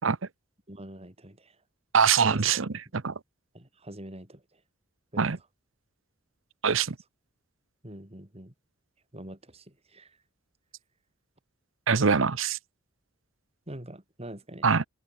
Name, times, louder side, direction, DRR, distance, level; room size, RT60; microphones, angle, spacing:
voice 1, 0.7-1.6 2.3-2.4 3.5-4.6 5.1-5.3 7.8-8.5 9.1-10.2 13.7-14.7, right 1 dB, 30° right, 4.3 m, -44 dB
voice 2, 1.9-3.1 5.2-5.4 6.6-6.9 11.9-12.6 14.6-14.9, right 6 dB, 85° right, 0.9 m, -23 dB
open air
head